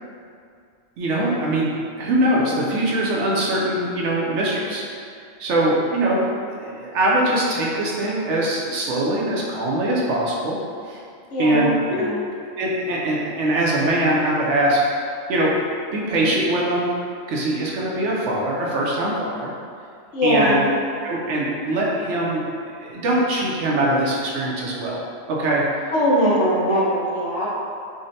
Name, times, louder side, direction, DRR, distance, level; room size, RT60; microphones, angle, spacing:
voice 1, 1.0-4.8 5.4-6.2 6.6-10.6 10.9-11.0 11.4-12.1 12.6-15.5 15.9-16.9 17.3-19.5 20.2-20.6 21.0-22.4 22.8-25.0 25.3-25.6, right 1 dB, 70° right, -4 dB, 0.9 m, -22 dB
voice 2, 11.3-11.7 12.0-12.2 16.0-16.3 20.1-20.7 25.9-27.5, equal, 70° left, -6 dB, 1.0 m, -21 dB
5.0 x 2.1 x 2.6 m, 2.3 s
omnidirectional pair, 1.3 m